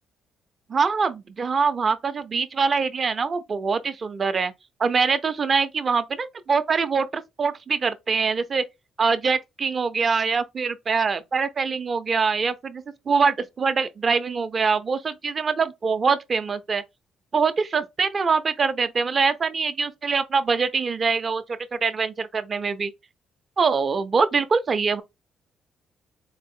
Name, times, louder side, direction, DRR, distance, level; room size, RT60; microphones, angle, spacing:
voice 1, 0.7-4.5 4.8-8.6 9.0-16.8 17.3-22.9 23.6-25.0, right 5 dB, 40° right, 0.5 m, -24 dB
4.0 x 2.0 x 3.5 m
cardioid pair, 90°, 0 cm